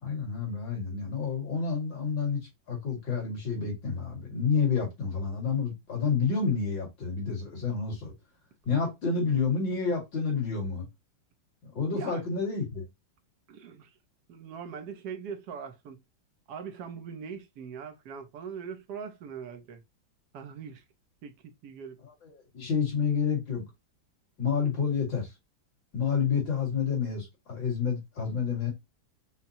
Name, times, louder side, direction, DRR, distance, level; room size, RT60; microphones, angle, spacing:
voice 1, 0.0-8.1 8.7-10.9 11.7-12.8 22.2-23.6 24.4-25.3 25.9-28.7, left 5 dB, 65° left, 2.6 m, -29 dB
voice 2, 11.9-12.2 13.5-13.9 14.3-16.0 16.5-19.8 20.3-20.8 21.2-22.0, right 6 dB, 65° right, 1.2 m, -41 dB
5.7 x 2.2 x 2.7 m
omnidirectional pair, 2.2 m